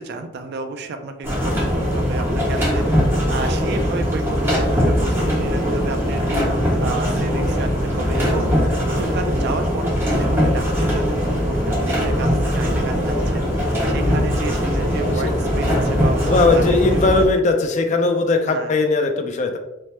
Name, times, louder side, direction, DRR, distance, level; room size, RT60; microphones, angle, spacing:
voice 1, 0.0-17.3 18.5-18.8, right 3 dB, 55° right, 7 dB, 0.3 m, -32 dB
sound 1, 1.2-17.2, equal, 10° right, 0.8 m, -20 dB
voice 2, 16.2-19.6, left 3 dB, 35° left, 4 dB, 0.3 m, -19 dB
3.2 x 2.0 x 2.8 m, 0.94 s
head